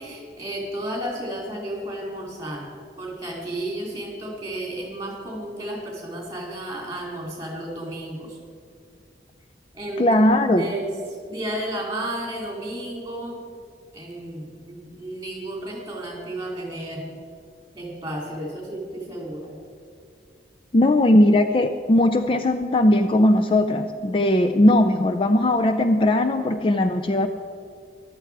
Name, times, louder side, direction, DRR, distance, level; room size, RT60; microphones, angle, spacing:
voice 1, 0.0-2.7 3.0-8.4 9.7-10.1 10.5-13.4 13.9-17.1 17.7-19.6, right 1 dB, 20° right, 0 dB, 2.9 m, -32 dB
voice 2, 10.0-10.7 20.7-27.3, left 1 dB, 30° left, 7 dB, 0.4 m, -18 dB
14.5 x 12.0 x 4.7 m, 2.3 s
head